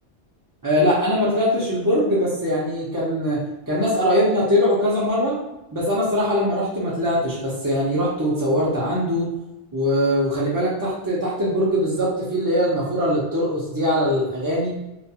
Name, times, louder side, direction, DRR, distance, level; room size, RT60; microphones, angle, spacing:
voice 1, 0.6-3.4 3.7-5.4 5.7-9.3 9.7-14.7, equal, 30° right, -8 dB, 0.3 m, -21 dB
2.4 x 2.3 x 2.7 m, 0.94 s
omnidirectional pair, 1.1 m